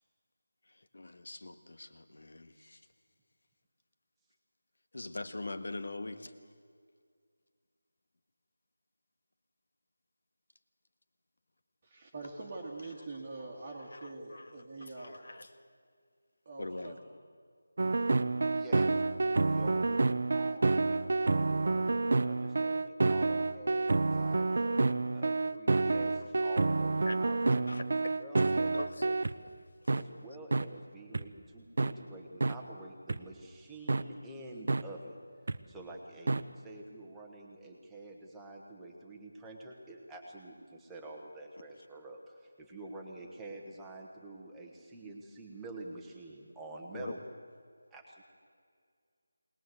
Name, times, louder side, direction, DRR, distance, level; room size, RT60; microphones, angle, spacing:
voice 1, 0.9-2.8 4.9-6.3 13.8-14.6 14.8-15.5 16.6-17.0 27.1-27.8 28.4-28.5 28.7-29.1 29.9-30.0 46.9-47.1, left 2 dB, 65° left, 9 dB, 1.7 m, -42 dB
voice 2, 11.8-15.2 16.5-17.1, right 2 dB, 20° right, -2 dB, 1.7 m, -44 dB
sound 1, 17.8-29.3 29.9-30.0 30.5-30.6 31.1-31.2 31.8-31.9 32.4-32.5 33.1-33.2 33.9-34.0 34.7-34.8 35.5-35.6 36.3-36.4, right 3 dB, 45° right, 0.8 m, -28 dB
voice 3, 18.5-19.0 19.5-19.8 20.3-28.7 29.9-35.2 35.7-47.2 47.9-48.2, right 2 dB, 5° right, -2 dB, 1.3 m, -48 dB
21.5 x 20.0 x 7.8 m, 2.1 s
figure-of-eight pair, 180°, 0 cm